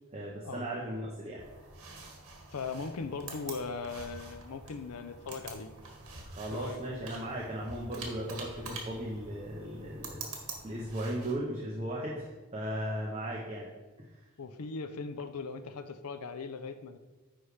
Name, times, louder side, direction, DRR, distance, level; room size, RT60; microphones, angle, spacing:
voice 1, 0.1-1.4 6.2-10.2 10.6-12.3 12.5-13.7, right 1 dB, 30° right, -4 dB, 0.9 m, -36 dB
sound 1, 1.4-11.3, right 3 dB, 75° right, 1.5 m, -46 dB
voice 2, 2.5-5.8 6.5-6.8 14.4-17.0, left 4 dB, 85° left, 9 dB, 0.6 m, -39 dB
9.8 x 3.3 x 4.9 m, 1.3 s
head